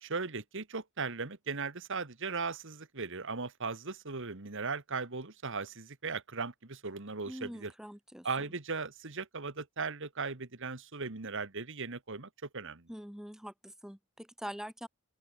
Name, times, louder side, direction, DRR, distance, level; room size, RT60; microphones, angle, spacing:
voice 1, 0.0-7.7 8.2-12.9, right 4 dB, 55° right, 1.7 m, -38 dB
voice 2, 7.3-8.3 12.9-14.9, equal, ahead, 0.8 m, -44 dB
open air
head